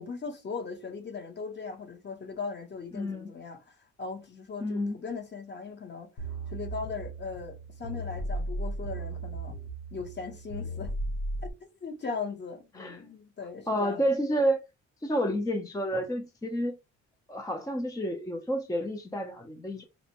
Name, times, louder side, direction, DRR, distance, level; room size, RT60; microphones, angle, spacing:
voice 1, 0.0-6.1 6.5-9.6 9.9-10.9 11.4-11.5 11.8-14.1, left 5 dB, 35° left, 1.0 m, -39 dB
voice 2, 2.9-3.3 4.6-5.0 12.8-13.0 13.7-14.6 15.0-16.8 17.3-19.8, equal, 10° left, 0.5 m, -30 dB
sound 1, 6.2-11.5, right 1 dB, 75° left, 0.9 m, -36 dB
4.2 x 2.1 x 2.8 m
cardioid pair, 90°, 30 cm